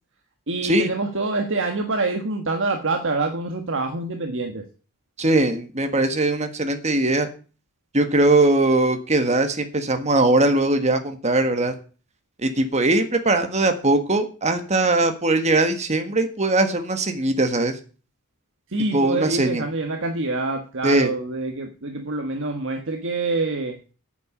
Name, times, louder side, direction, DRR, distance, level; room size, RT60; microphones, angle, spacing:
voice 1, 0.5-4.6 18.7-23.8, right 3 dB, 55° right, 5 dB, 1.4 m, -26 dB
voice 2, 5.2-7.3 7.9-11.7 12.4-17.8 18.9-19.6 20.8-21.1, right 2 dB, 30° right, 7 dB, 1.6 m, -20 dB
9.2 x 7.5 x 8.6 m, 0.37 s
head